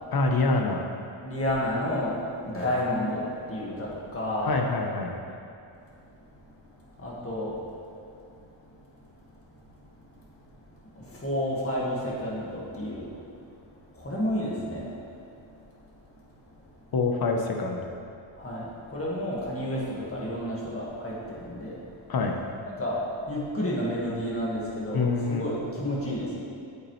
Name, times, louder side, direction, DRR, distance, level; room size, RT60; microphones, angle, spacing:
voice 1, 0.1-0.8 4.4-5.1 16.9-17.9 22.1-22.4 24.9-25.5, left 3 dB, 50° left, 2 dB, 0.8 m, -25 dB
voice 2, 1.2-2.2 2.5-3.2 3.5-4.6 7.0-7.6 11.2-13.0 14.0-14.9 18.4-18.7 18.9-19.8 20.1-21.8 22.8-23.0 23.3-26.3, left 1 dB, 30° left, -6 dB, 1.7 m, -30 dB
8.6 x 8.3 x 3.1 m, 2.6 s
wide cardioid pair, 170°, 48 cm